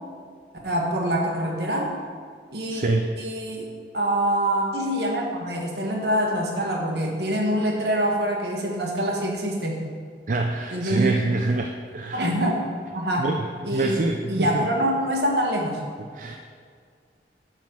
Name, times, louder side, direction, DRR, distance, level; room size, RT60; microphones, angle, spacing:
voice 1, 0.6-1.9 2.5-2.8 3.2-9.8 10.7-11.2 12.1-12.7 12.9-13.3 13.6-15.8, right 1 dB, 65° right, 0 dB, 1.7 m, -25 dB
voice 2, 2.7-3.1 10.3-12.3 13.2-13.4 13.7-14.7 16.2-16.4, right 2 dB, 45° right, 3 dB, 0.5 m, -26 dB
11.0 x 4.2 x 7.1 m, 2.1 s
head